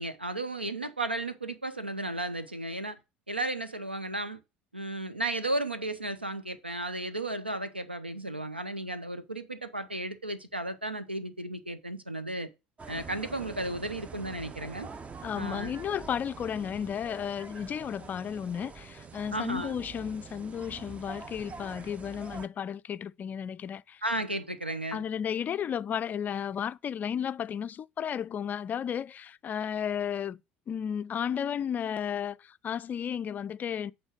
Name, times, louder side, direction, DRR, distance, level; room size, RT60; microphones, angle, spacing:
voice 1, 0.0-3.0 3.3-4.4 4.7-12.5 12.9-14.9 15.3-15.7 19.3-19.8 24.0-25.0, right 2 dB, 90° right, 0.7 m, -34 dB
sound 1, 12.8-22.5, right 5 dB, 25° right, 0.6 m, -45 dB
voice 2, 15.2-24.0 24.9-30.4 30.7-33.9, left 8 dB, 30° left, 0.3 m, -33 dB
8.6 x 3.7 x 6.2 m
figure-of-eight pair, 70°, 5 cm